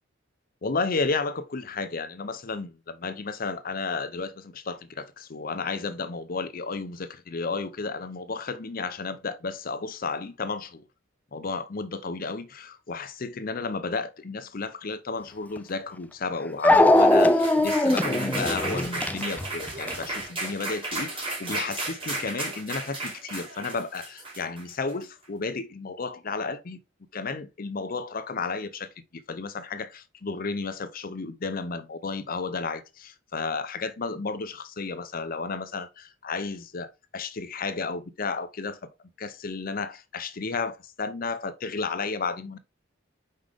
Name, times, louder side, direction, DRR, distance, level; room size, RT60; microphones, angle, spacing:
voice 1, 0.6-10.8 11.3-26.8 27.1-38.8 39.2-42.6, left 4 dB, 45° left, 0.6 m, -32 dB
Dog, 15.6-15.7 16.6-20.0, left 1 dB, 10° left, 0.4 m, -20 dB
sound 1, 16.7-25.0, right 2 dB, 30° right, 3.3 m, -34 dB
5.5 x 5.2 x 3.4 m
head